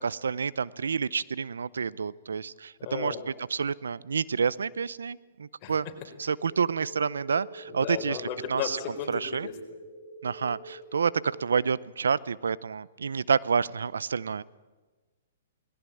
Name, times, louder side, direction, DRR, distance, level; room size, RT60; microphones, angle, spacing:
voice 1, 0.0-5.9 6.2-8.8 9.1-9.5 10.2-14.4, right 6 dB, 85° right, 20 dB, 0.6 m, -29 dB
voice 2, 2.8-3.2 5.6-5.7 7.8-9.5, left 8 dB, 35° left, 3 dB, 4.2 m, -34 dB
sound 1, 6.4-11.4, right 1 dB, 20° left, 5.4 m, -46 dB
20.0 x 17.5 x 8.5 m, 1.3 s
hypercardioid pair, 135°, 0 cm